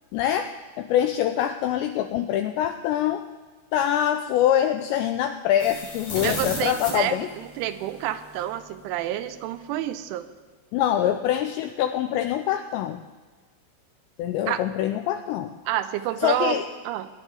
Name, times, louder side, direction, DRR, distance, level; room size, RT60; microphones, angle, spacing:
voice 1, 0.1-3.2 3.7-7.3 10.7-13.0 14.2-15.6 16.2-16.6, left 11 dB, 85° left, 7 dB, 2.5 m, -24 dB
sound 1, 5.6-8.5, left 1 dB, 35° left, 5.5 m, -35 dB
voice 2, 6.2-10.3 14.5-14.6 15.7-17.1, right 12 dB, 85° right, 11 dB, 3.0 m, -29 dB
20.5 x 11.0 x 3.9 m, 1.3 s
omnidirectional pair, 5.6 m